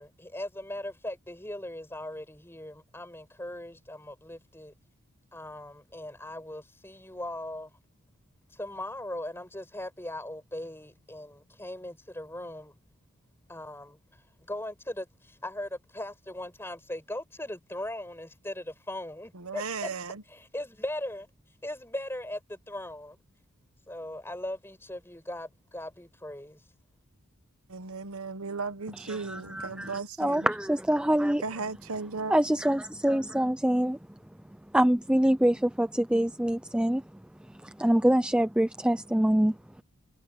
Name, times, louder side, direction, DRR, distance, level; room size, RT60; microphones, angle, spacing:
voice 1, 0.0-4.7 5.3-7.7 8.5-12.7 13.5-19.9 20.3-21.3 21.6-23.2 23.9-26.6, left 1 dB, 10° left, 6.8 m, -39 dB
voice 2, 19.3-20.2 27.7-30.5 31.4-32.4, right 4 dB, 85° right, 1.2 m, -36 dB
voice 3, 29.1-29.9 30.2-31.4 32.3-34.0 34.7-37.0 37.6-39.6, right 1 dB, 5° right, 0.4 m, -25 dB
head